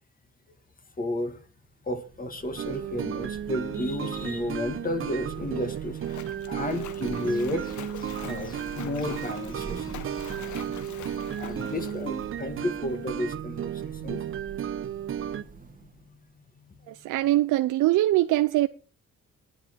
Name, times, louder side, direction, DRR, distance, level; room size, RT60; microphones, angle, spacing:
voice 1, 1.0-1.4 1.8-14.3 15.1-15.5 16.0-16.2 16.6-16.9, left 1 dB, 30° left, 1.8 m, -33 dB
Thunder / Rain, 2.0-16.3, right 6 dB, 25° right, 1.6 m, -45 dB
sound 1, 2.6-15.4, right 9 dB, 45° right, 0.7 m, -34 dB
Splash splatter, 5.2-13.1, left 9 dB, 70° left, 1.2 m, -45 dB
voice 2, 16.9-18.7, right 15 dB, 80° right, 0.6 m, -22 dB
10.5 x 10.0 x 4.5 m
cardioid pair, 90°, 30 cm